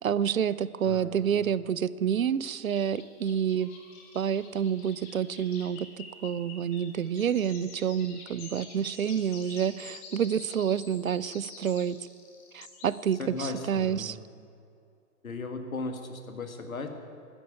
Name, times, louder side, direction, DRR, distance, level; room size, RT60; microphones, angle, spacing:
voice 1, 0.0-3.7 4.1-12.0 12.5-14.2, right 8 dB, 65° right, 18 dB, 0.6 m, -28 dB
voice 2, 0.8-1.5 13.2-14.2 15.2-16.9, left 3 dB, 65° left, 6 dB, 1.8 m, -37 dB
sound 1, 2.5-13.1, left 4 dB, 10° left, 0.6 m, -48 dB
12.5 x 9.0 x 9.3 m, 2.5 s
figure-of-eight pair, 125°, 44 cm